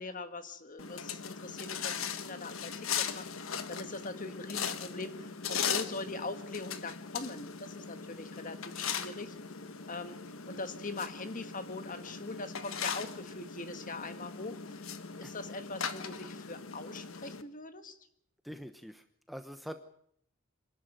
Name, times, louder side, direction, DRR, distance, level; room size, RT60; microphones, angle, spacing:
voice 1, 0.0-9.3 9.9-10.2 10.5-14.8 15.2-18.0, left 3 dB, 40° left, 9 dB, 1.7 m, -42 dB
sound 1, 0.8-17.4, left 7 dB, 65° left, 1.4 m, -39 dB
voice 2, 18.4-19.8, equal, ahead, 7 dB, 0.9 m, -45 dB
26.0 x 12.0 x 9.1 m, 0.67 s
head